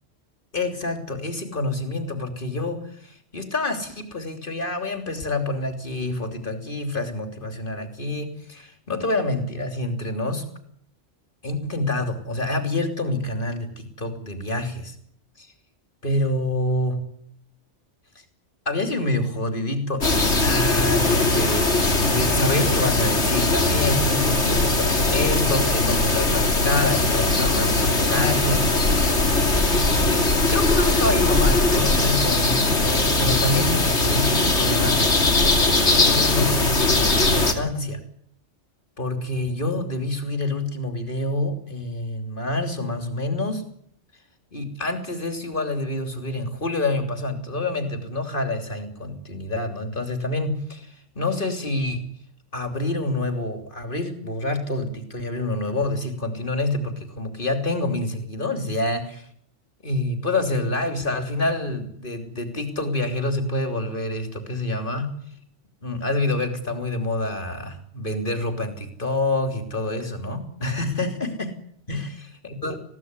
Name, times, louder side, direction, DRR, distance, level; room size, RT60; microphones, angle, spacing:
voice 1, 0.5-10.4 11.4-14.9 15.4-15.5 16.0-17.0 18.6-28.6 29.8-35.0 35.8-38.0 39.0-43.6 44.5-52.1 52.5-59.3 59.8-65.1 65.8-71.5 71.9-72.1 72.6-72.8, left 2 dB, 45° left, 6 dB, 3.4 m, -27 dB
sound 1, 20.0-37.5, left 2 dB, 70° left, 3.1 m, -20 dB
21.0 x 17.0 x 9.7 m, 0.67 s
omnidirectional pair, 1.2 m